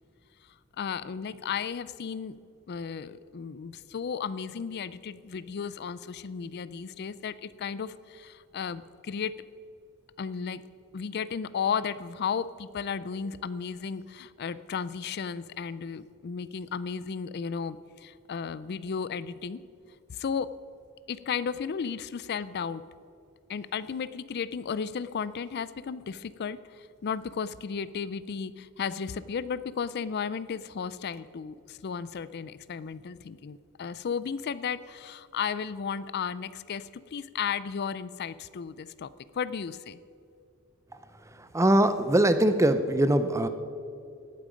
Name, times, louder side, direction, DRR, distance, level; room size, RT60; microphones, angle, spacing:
voice 1, 0.8-2.3 2.7-9.4 10.2-10.6 10.9-19.6 20.1-20.5 21.1-22.8 23.5-39.1 39.3-40.0, left 6 dB, 50° left, 16 dB, 0.4 m, -34 dB
voice 2, 41.5-43.5, right 1 dB, 15° right, 10 dB, 0.5 m, -22 dB
17.5 x 8.7 x 5.1 m, 2.6 s
head